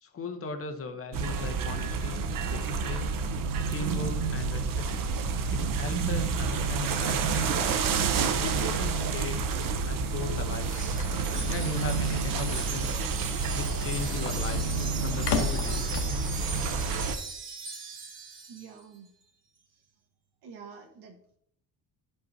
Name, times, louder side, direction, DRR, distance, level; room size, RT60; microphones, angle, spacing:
voice 1, 0.0-3.1 3.7-4.9 5.5-7.9 8.4-9.4 9.9-10.7 11.5-14.6 15.0-16.0, left 4 dB, 35° left, 6 dB, 0.8 m, -38 dB
sound 1, 1.1-17.2, right 5 dB, 55° right, 0.7 m, -29 dB
sound 2, 9.8-16.4, left 5 dB, 75° left, 1.1 m, -36 dB
Wind chime, 10.5-18.7, right 4 dB, 30° right, 1.0 m, -39 dB
voice 2, 18.5-19.1 19.7-19.8 20.4-21.4, right 6 dB, 80° right, 1 dB, 1.3 m, -48 dB
11.5 x 5.4 x 2.7 m, 0.71 s
cardioid pair, 165°, 40 cm